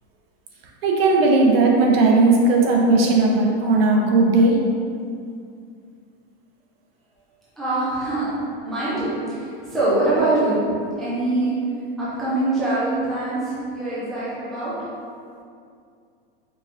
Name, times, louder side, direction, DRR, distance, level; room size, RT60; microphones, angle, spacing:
voice 1, 0.8-4.6, right 3 dB, 80° right, -1 dB, 0.9 m, -17 dB
voice 2, 7.6-8.3 8.6-10.6 11.0-11.5 12.0-13.4 13.7-14.7, right 2 dB, ahead, -12 dB, 0.4 m, -23 dB
4.7 x 3.3 x 2.5 m, 2.3 s
supercardioid pair, 170°, 29 cm